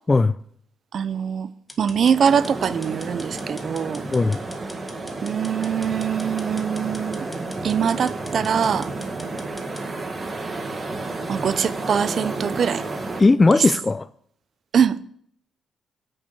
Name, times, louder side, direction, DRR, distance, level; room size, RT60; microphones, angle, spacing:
voice 1, 0.9-1.5 1.8-4.0 5.2-7.3 7.6-8.9 11.3-12.8 13.5-13.6 14.7-15.0, right 7 dB, 55° right, 0.5 m, -23 dB
sound 1, 1.7-9.9, left 1 dB, 5° left, 1.7 m, -44 dB
sound 2, 2.0-13.2, right 2 dB, 30° right, 1.5 m, -31 dB
voice 2, 13.2-14.1, left 3 dB, 25° left, 0.3 m, -17 dB
8.6 x 6.4 x 8.2 m
cardioid pair, 90°, 0 cm